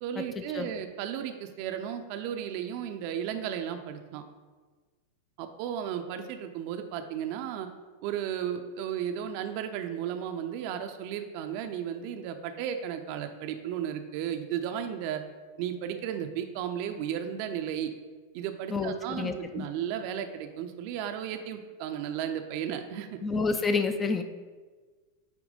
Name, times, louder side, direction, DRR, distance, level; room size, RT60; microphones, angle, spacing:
voice 1, 0.0-4.2 5.4-7.7 8.0-15.2 15.6-17.9 18.3-23.2, right 9 dB, 45° right, 7 dB, 0.6 m, -34 dB
voice 2, 18.7-19.7 23.2-24.2, left 4 dB, 20° left, 7 dB, 0.5 m, -29 dB
8.9 x 3.0 x 5.1 m, 1.4 s
figure-of-eight pair, 90°, 0 cm